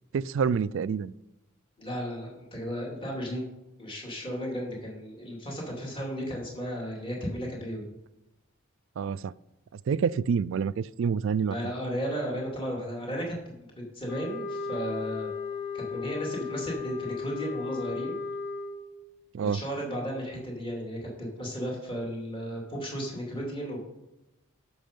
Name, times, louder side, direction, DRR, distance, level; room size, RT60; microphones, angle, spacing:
voice 1, 0.1-1.1 9.0-9.3 9.7-11.7 19.3-19.6, right 6 dB, 60° right, 18 dB, 0.3 m, -28 dB
voice 2, 1.8-3.4 3.8-7.9 11.4-13.6 13.9-15.3 15.7-18.2 19.4-23.9, equal, 25° left, -2 dB, 2.6 m, -34 dB
sound 1, 14.1-19.0, left 5 dB, 60° left, 1.7 m, -35 dB
13.0 x 6.2 x 5.2 m, 0.96 s
head